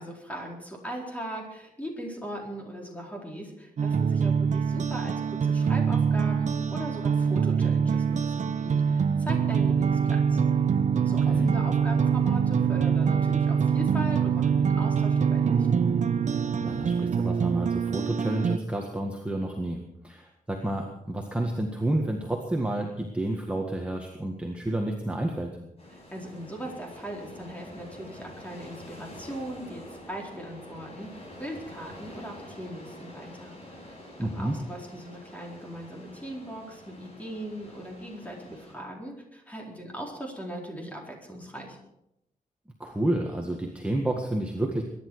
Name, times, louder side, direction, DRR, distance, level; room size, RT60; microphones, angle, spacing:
voice 1, 0.0-10.4 10.9-15.7 25.9-33.9 34.2-41.8, equal, 10° left, -1 dB, 4.3 m, -39 dB
sound 1, 3.8-18.6, right 6 dB, 55° right, 0.7 m, -24 dB
voice 2, 11.1-11.5 16.6-25.5 34.2-34.6 42.8-44.8, right 1 dB, 10° right, 1 dB, 1.7 m, -30 dB
sound 2, 25.8-38.7, left 1 dB, 45° left, 7.4 m, -47 dB
23.0 x 11.0 x 4.8 m, 0.83 s
wide cardioid pair, 140°, 15 cm